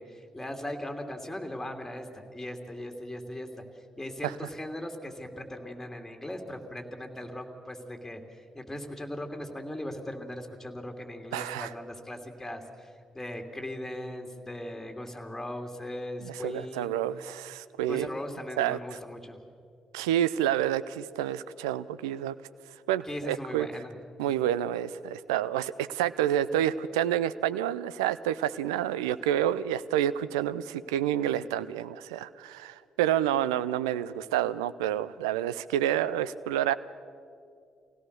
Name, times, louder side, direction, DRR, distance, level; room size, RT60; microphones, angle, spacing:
voice 1, 0.0-3.5 4.0-17.0 17.8-19.4 23.1-23.9, left 1 dB, 10° left, 4 dB, 2.9 m, -39 dB
voice 2, 11.3-11.7 16.2-18.1 18.6-19.0 19.9-22.3 22.9-23.7 24.2-36.7, right 11 dB, 80° right, 15 dB, 0.5 m, -29 dB
24.5 x 17.0 x 6.7 m, 2.3 s
hypercardioid pair, 40°, 3 cm